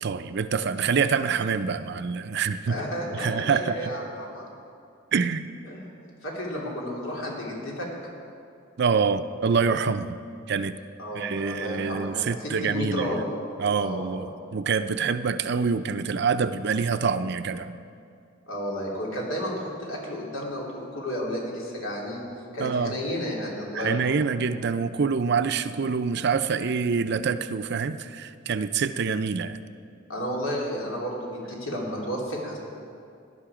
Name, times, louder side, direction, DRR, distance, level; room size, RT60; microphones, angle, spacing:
voice 1, 0.0-2.8 3.1-3.9 5.1-5.5 8.8-10.2 10.5-10.8 11.1-13.2 13.6-17.8 22.6-23.0 23.7-29.6, right 5 dB, 60° right, 11 dB, 0.5 m, -26 dB
voice 2, 2.7-4.5 5.7-5.9 6.2-7.9 11.0-13.3 13.7-14.3 16.7-16.8 18.5-22.3 22.5-24.2 30.1-32.6, equal, 85° left, -3 dB, 3.1 m, -32 dB
18.0 x 11.0 x 5.0 m, 2.4 s
head